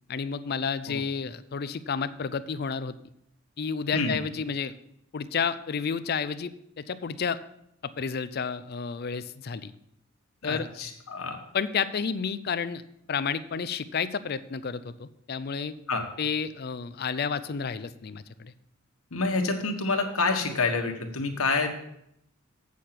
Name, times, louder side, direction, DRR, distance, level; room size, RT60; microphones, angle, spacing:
voice 1, 0.1-2.9 3.6-4.7 5.1-7.4 7.8-9.7 10.4-10.7 11.5-12.8 13.1-15.7 16.2-18.5, left 6 dB, 45° left, 14 dB, 0.4 m, -31 dB
voice 2, 10.4-11.4 15.9-16.0 19.1-21.7, left 3 dB, 85° left, 3 dB, 1.5 m, -27 dB
8.4 x 6.6 x 5.8 m, 0.76 s
head